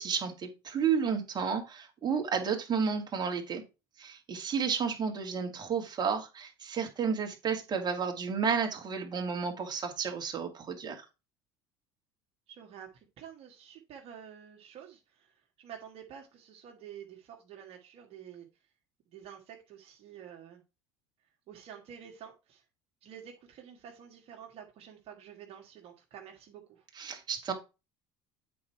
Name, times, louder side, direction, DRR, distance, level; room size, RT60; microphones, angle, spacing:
voice 1, 0.0-3.6 4.0-11.1 27.0-27.5, right 6 dB, 35° right, 2.3 m, -32 dB
voice 2, 12.5-18.5 19.1-20.6 21.5-22.6 23.0-26.9, right 8 dB, 55° right, 1.9 m, -49 dB
8.5 x 4.4 x 4.6 m
supercardioid pair, 90°, 12 cm